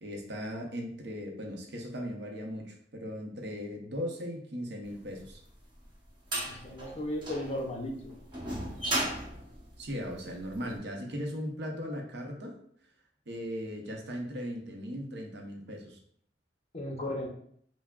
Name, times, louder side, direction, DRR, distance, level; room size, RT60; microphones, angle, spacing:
voice 1, 0.0-5.4 9.8-12.6 13.3-16.0, equal, 65° right, 2 dB, 0.7 m, -38 dB
sound 1, 5.2-10.6, right 1 dB, 25° right, 0.9 m, -36 dB
voice 2, 6.4-8.2 16.7-17.3, left 1 dB, 35° left, 1 dB, 0.5 m, -35 dB
5.6 x 2.0 x 2.3 m, 0.65 s
head